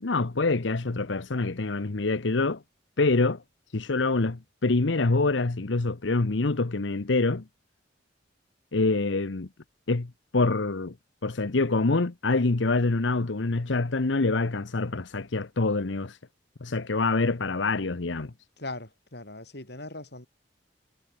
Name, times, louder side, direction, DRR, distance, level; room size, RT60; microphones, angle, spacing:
voice 1, 0.0-2.6 3.0-3.4 3.7-7.4 8.7-9.5 9.9-10.9 11.2-16.2 16.6-18.3, left 3 dB, 80° left, 1.0 m, -26 dB
voice 2, 18.6-20.3, left 2 dB, 60° left, 6.6 m, -39 dB
head